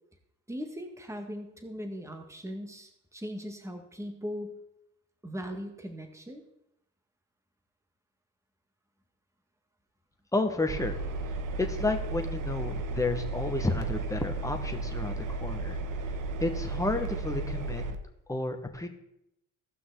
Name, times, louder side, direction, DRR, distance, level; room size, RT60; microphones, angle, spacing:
voice 1, 0.5-4.6 5.2-6.4, equal, 10° right, 5 dB, 1.7 m, -39 dB
voice 2, 10.3-11.0 11.6-15.8 16.4-17.8 18.3-18.9, left 2 dB, 10° left, 4 dB, 1.7 m, -31 dB
Engine, 10.7-18.0, right 2 dB, 55° right, 1.2 m, -34 dB
17.5 x 5.9 x 4.0 m, 0.81 s
supercardioid pair, 65°, 38 cm